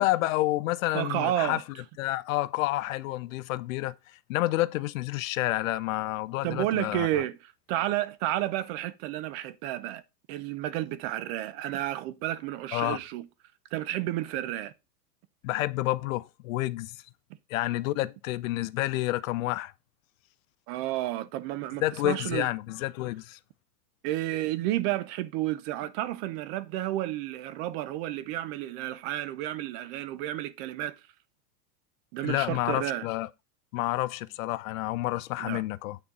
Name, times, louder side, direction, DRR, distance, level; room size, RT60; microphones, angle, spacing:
voice 1, 0.0-1.6 2.0-3.9 4.3-7.1 12.7-13.0 15.4-17.0 17.5-19.7 21.8-23.4 32.2-33.3 33.7-36.0, left 17 dB, 55° left, 0.6 m, -29 dB
voice 2, 0.9-1.6 6.4-10.0 10.3-13.3 13.7-14.7 20.7-22.5 24.0-31.0 32.1-33.1 35.4-35.6, right 14 dB, 40° right, 0.7 m, -31 dB
8.9 x 4.3 x 5.4 m
supercardioid pair, 135°, 50 cm